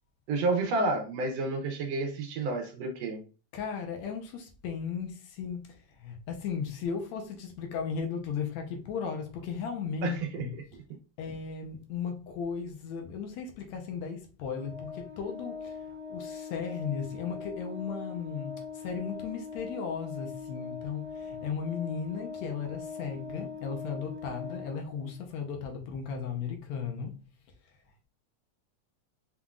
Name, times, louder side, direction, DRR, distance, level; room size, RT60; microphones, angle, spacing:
voice 1, 0.3-3.2 10.0-10.6, right 3 dB, 70° right, 1.7 m, -30 dB
voice 2, 3.5-10.5 11.2-15.7 16.1-27.1, left 6 dB, 75° left, 2.0 m, -36 dB
Organ, 14.5-25.3, left 5 dB, 50° left, 1.2 m, -41 dB
5.6 x 3.6 x 2.4 m
omnidirectional pair, 3.3 m